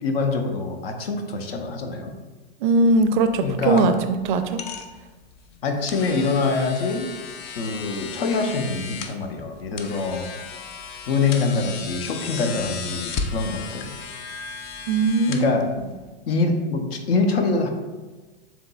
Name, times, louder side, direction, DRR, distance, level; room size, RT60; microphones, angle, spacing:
voice 1, 0.0-2.1 3.4-3.9 5.6-7.1 7.5-10.3 11.1-13.9 15.3-15.7 16.3-17.7, left 4 dB, 70° left, 4 dB, 0.8 m, -24 dB
voice 2, 2.6-4.6 14.9-15.6, right 3 dB, 50° right, 9 dB, 0.5 m, -20 dB
sound 1, 2.8-16.1, left 5 dB, 35° left, 0.4 m, -36 dB
7.2 x 2.9 x 2.3 m, 1.3 s
hypercardioid pair, 105°, 31 cm